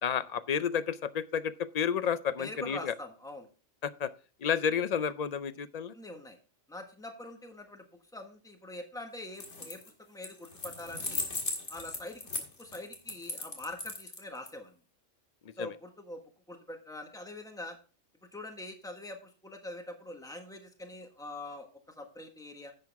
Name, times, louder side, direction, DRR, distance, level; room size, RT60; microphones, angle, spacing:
voice 1, 0.0-2.9 3.8-4.1 4.4-5.9 15.6-15.7, left 7 dB, 50° left, 14 dB, 0.5 m, -31 dB
voice 2, 2.4-3.5 5.9-6.4 6.7-7.8 8.1-11.3 11.7-12.2 12.6-14.7 15.6-17.8 18.3-22.7, left 1 dB, 5° left, 4 dB, 1.4 m, -44 dB
sound 1, 9.3-9.9 10.2-14.5, left 3 dB, 75° left, 2.2 m, -37 dB
10.5 x 7.8 x 3.5 m, 0.35 s
omnidirectional pair, 1.2 m